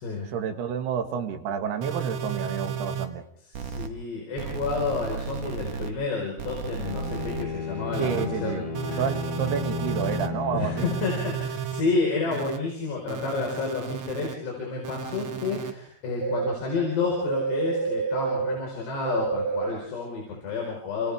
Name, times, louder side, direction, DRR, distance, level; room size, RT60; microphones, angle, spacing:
voice 1, 0.3-3.2 8.0-8.6 9.0-11.0, right 7 dB, 75° right, 5 dB, 3.7 m, -30 dB
sound 1, 1.8-3.0 3.5-3.9 4.4-5.9 6.4-7.4 7.9-8.2 8.7-10.3 10.8-11.8 12.3-12.6 13.1-14.3 14.8-15.7 16.2-16.5 17.0-18.5 19.0-19.7, right 6 dB, 55° right, 2.1 m, -31 dB
voice 2, 3.5-9.0 10.5-21.1, left 4 dB, 80° left, -1 dB, 6.9 m, -30 dB
Bowed string instrument, 6.7-11.6, left 4 dB, 45° left, 7.2 m, -34 dB
29.0 x 28.0 x 3.6 m, 0.62 s
omnidirectional pair, 4.8 m